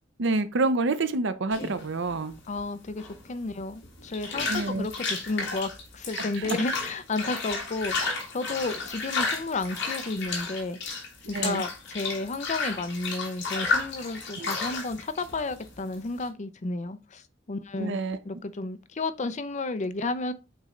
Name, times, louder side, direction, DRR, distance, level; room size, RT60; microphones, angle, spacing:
voice 1, 0.2-2.3 4.4-4.9 6.4-6.6 11.3-11.6 14.4-14.5 17.8-18.2, right 3 dB, 65° right, 0.7 m, -27 dB
sound 1, 1.5-16.3, left 4 dB, 65° left, 2.2 m, -33 dB
voice 2, 2.5-10.8 11.2-17.2 17.5-18.0 18.2-20.3, left 3 dB, 40° left, 0.5 m, -32 dB
8.0 x 3.2 x 3.8 m
head